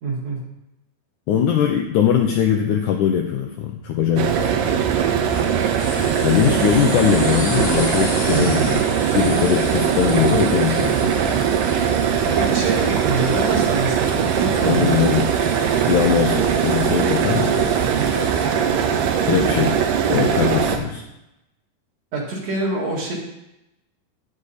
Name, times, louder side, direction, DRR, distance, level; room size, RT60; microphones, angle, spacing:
voice 1, 0.0-0.4 6.5-6.7 8.3-8.6 10.7-10.8 12.2-15.2 17.7-18.0 22.1-23.1, right 3 dB, 50° right, -3 dB, 2.8 m, -26 dB
voice 2, 1.3-4.5 6.2-8.8 9.1-11.2 14.6-15.3 15.9-17.7 19.3-21.0, left 9 dB, 75° left, 3 dB, 1.8 m, -21 dB
sound 1, 4.2-20.8, right 8 dB, 75° right, 2.4 m, -20 dB
sound 2, 5.2-18.4, left 1 dB, 30° left, 1.2 m, -35 dB
10.0 x 9.9 x 4.2 m, 0.89 s
omnidirectional pair, 4.3 m